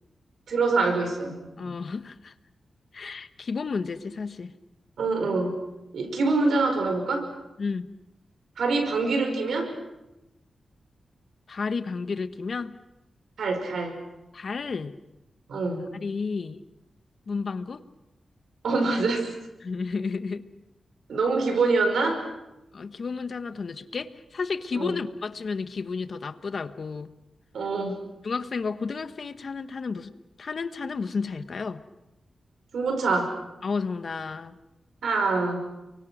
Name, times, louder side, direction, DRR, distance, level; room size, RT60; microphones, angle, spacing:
voice 1, 0.5-1.7 5.0-5.6 5.9-7.3 8.6-9.7 13.4-14.0 15.5-15.8 18.6-19.3 21.1-22.2 24.7-25.0 27.5-28.0 32.7-33.4 35.0-35.7, right 3 dB, 85° right, 5 dB, 5.1 m, -25 dB
voice 2, 1.6-2.3 2.9-4.5 7.6-7.9 11.5-12.8 14.3-15.0 15.9-16.6 17.3-17.8 19.6-20.5 22.7-27.1 28.2-30.1 30.4-31.8 33.6-34.5, left 4 dB, 50° left, 11 dB, 1.1 m, -32 dB
30.0 x 24.0 x 6.2 m, 0.95 s
wide cardioid pair, 135°, 0 cm